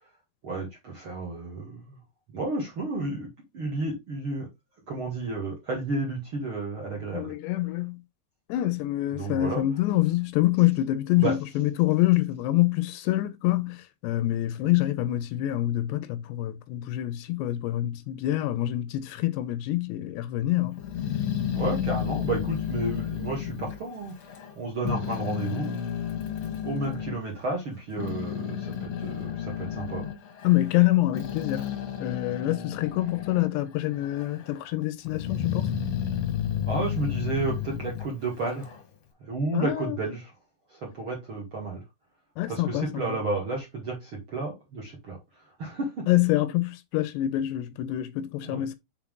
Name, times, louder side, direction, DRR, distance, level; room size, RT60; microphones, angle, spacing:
voice 1, 0.4-2.0 2.3-3.3 3.5-4.5 4.9-7.3 9.1-9.6 11.1-11.3 21.5-24.2 24.6-25.8 26.6-30.1 36.7-38.8 39.3-40.3 40.7-41.8 42.5-45.2 45.6-46.1 48.4-48.7, right 3 dB, 45° right, 1.9 m, -32 dB
voice 2, 7.1-8.0 8.5-20.8 30.4-31.7 32.0-35.7 39.5-40.0 42.4-43.0 46.1-48.8, left 15 dB, 80° left, 2.7 m, -26 dB
Growling, 20.8-24.5 24.8-27.2 27.7-33.6 33.9-34.6 35.1-38.8, left 9 dB, 60° left, 1.7 m, -32 dB
7.2 x 4.3 x 3.6 m
omnidirectional pair, 5.1 m